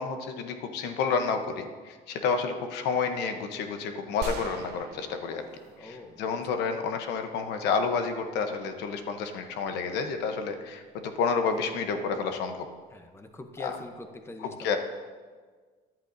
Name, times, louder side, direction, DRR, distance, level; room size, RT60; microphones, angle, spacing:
voice 1, 0.0-5.5 5.8-12.6 13.6-13.7 14.4-14.8, left 5 dB, 85° left, 7 dB, 0.9 m, -30 dB
sound 1, 4.2-7.1, right 3 dB, 80° right, 0.9 m, -41 dB
voice 2, 5.8-6.3 12.9-14.8, left 2 dB, 15° left, 6 dB, 0.8 m, -44 dB
13.5 x 10.5 x 2.7 m, 1.5 s
cardioid pair, 110°, 17 cm